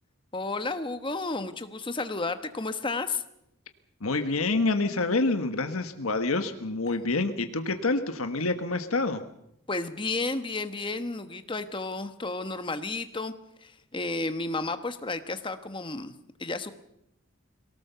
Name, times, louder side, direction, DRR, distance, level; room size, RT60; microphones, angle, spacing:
voice 1, 0.3-3.2 9.7-13.3 13.6-16.1 16.4-16.7, left 3 dB, 25° left, 9 dB, 1.1 m, -32 dB
voice 2, 4.0-9.2, left 3 dB, 90° left, 7 dB, 1.4 m, -27 dB
23.0 x 18.0 x 6.9 m, 0.79 s
head